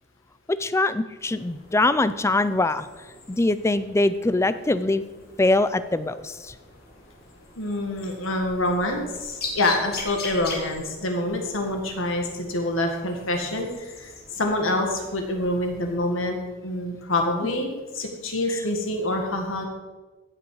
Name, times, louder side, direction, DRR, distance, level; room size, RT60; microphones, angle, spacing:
voice 1, 0.5-2.9 3.3-5.0 5.4-6.5, left 2 dB, 15° left, 13 dB, 0.4 m, -23 dB
sound 1, 1.2-16.0, left 3 dB, 50° left, 2.2 m, -42 dB
voice 2, 7.6-16.4 16.6-19.7, left 1 dB, 70° left, 3 dB, 1.8 m, -26 dB
15.5 x 6.2 x 4.8 m, 1.3 s
head